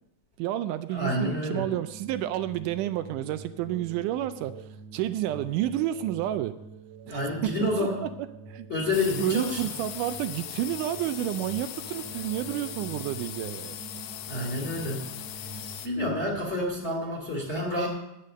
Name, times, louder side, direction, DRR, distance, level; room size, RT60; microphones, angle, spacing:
voice 1, 0.4-6.6 7.1-8.1 8.5-8.7 9.2-13.8, right 13 dB, 80° right, 12 dB, 1.9 m, -30 dB
voice 2, 0.9-1.6 7.1-8.0 8.7-9.6 14.3-15.0 15.8-17.9, left 1 dB, 20° left, -1 dB, 2.4 m, -28 dB
sound 1, 1.5-16.4, right 4 dB, 55° right, 2.5 m, -46 dB
sound 2, 8.9-15.9, left 12 dB, 90° left, 2.4 m, -39 dB
11.0 x 8.3 x 6.5 m, 0.88 s
omnidirectional pair, 3.9 m